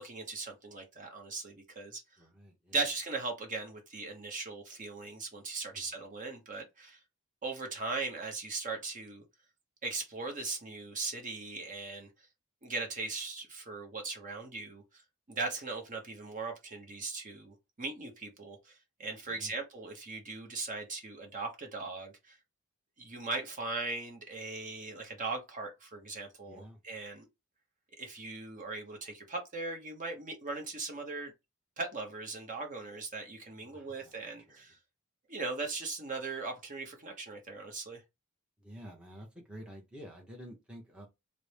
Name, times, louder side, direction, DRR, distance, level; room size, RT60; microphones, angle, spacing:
voice 1, 0.0-2.0 2.7-7.0 7.4-9.2 9.8-12.1 12.6-15.0 15.3-22.4 23.0-27.3 28.0-31.3 31.8-34.8 35.3-38.0, right 3 dB, 35° right, 0.9 m, -39 dB
voice 2, 2.2-2.8 5.7-6.0 19.3-19.6 26.4-26.8 33.5-34.2 34.5-34.6 38.6-41.1, equal, 5° right, 0.8 m, -50 dB
4.1 x 2.1 x 3.3 m
head